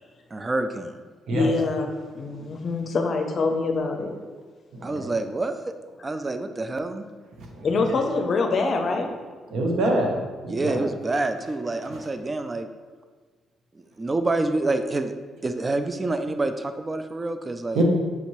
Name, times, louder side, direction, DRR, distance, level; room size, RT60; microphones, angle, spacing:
voice 1, 0.3-1.0 4.8-5.7 6.0-7.0 10.4-12.7 13.7-15.1 15.4-17.8, right 2 dB, 25° right, 8 dB, 0.3 m, -27 dB
voice 2, 1.3-1.9 2.1-4.1 7.6-9.1 10.7-10.8, left 3 dB, 50° left, 4 dB, 0.5 m, -25 dB
voice 3, 4.7-5.1 7.4-8.0 9.5-10.9 11.9-12.0 17.7-17.8, right 1 dB, 75° right, 0 dB, 0.8 m, -26 dB
5.8 x 2.7 x 3.0 m, 1.4 s
cardioid pair, 90°, 0 cm